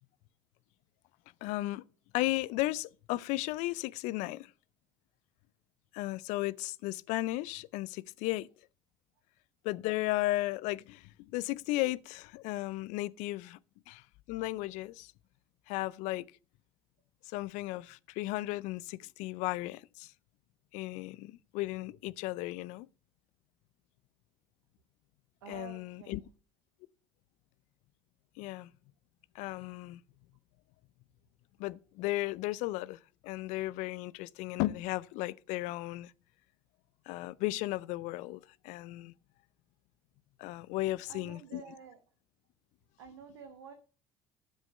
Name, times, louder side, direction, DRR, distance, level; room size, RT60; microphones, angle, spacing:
voice 1, 1.4-1.8 2.1-4.5 5.9-8.5 9.6-13.6 13.9-15.1 15.7-16.3 17.3-20.1 20.7-22.9 25.5-26.2 28.4-28.7 29.3-30.0 31.6-36.1 37.1-39.1 40.4-41.6, left 18 dB, 70° left, 0.5 m, -35 dB
voice 2, 25.4-26.3 40.8-42.0 43.0-43.7, right 7 dB, 85° right, 1.0 m, -50 dB
9.7 x 7.5 x 5.4 m
hypercardioid pair, 60°, 13 cm